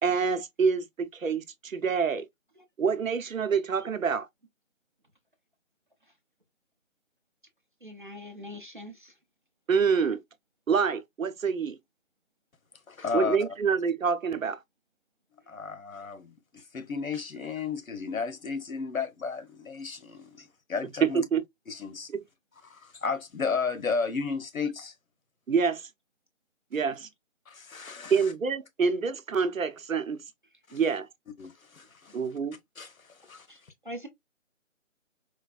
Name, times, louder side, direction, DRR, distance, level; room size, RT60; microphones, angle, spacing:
voice 1, 0.0-2.3 2.8-4.3 9.7-10.2 10.7-11.8 13.1-14.6 21.1-21.4 22.1-22.2 25.5-25.9 26.7-27.1 28.1-30.2 30.7-31.1 32.1-32.6, right 5 dB, 80° right, 0.8 m, -27 dB
voice 2, 7.8-9.1 16.5-16.6 33.5-34.1, equal, 40° right, 0.6 m, -43 dB
voice 3, 12.9-13.4 15.5-21.2 21.7-22.1 22.6-24.9 27.5-28.3 30.7-30.8 31.4-32.2 32.8-33.7, left 5 dB, 90° left, 1.0 m, -34 dB
4.4 x 2.4 x 2.3 m
figure-of-eight pair, 175°, 40 cm